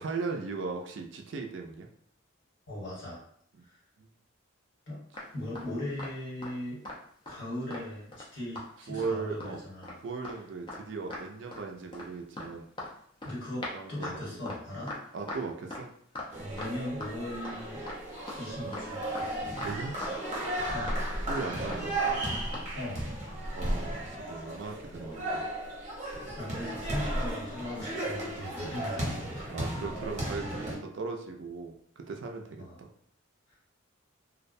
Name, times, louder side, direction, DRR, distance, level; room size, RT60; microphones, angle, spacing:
voice 1, 0.0-1.9 4.0-4.1 8.9-9.6 10.0-12.6 13.7-14.4 15.1-15.9 19.6-20.0 21.3-22.2 23.5-25.5 28.6-28.8 29.5-32.9, right 4 dB, 60° right, 3 dB, 0.3 m, -38 dB
voice 2, 2.7-3.2 3.6-3.8 4.9-5.0 5.3-6.8 7.3-10.0 13.2-14.9 16.4-17.8 18.4-19.5 20.7-21.0 22.7-23.1 26.0-29.5 30.5-30.6 32.6-32.8 33.5-33.6, left 1 dB, 60° left, -7 dB, 1.4 m, -39 dB
sound 1, 5.1-6.6 6.9-7.0 7.3-8.3 8.6-8.7 9.0-9.5 9.8-10.0 10.2-10.4 10.7-10.8 11.1-11.6 11.9-17.1 17.4-17.6 17.9-19.7 20.0-20.6 20.9-21.0 21.3-21.4 21.7-21.8 22.1-22.2 22.5-22.7, left 2 dB, 25° left, 0.5 m, -40 dB
sound 2, 16.3-30.8, right 1 dB, 35° right, 0.7 m, -35 dB
2.3 x 2.1 x 2.5 m, 0.64 s
head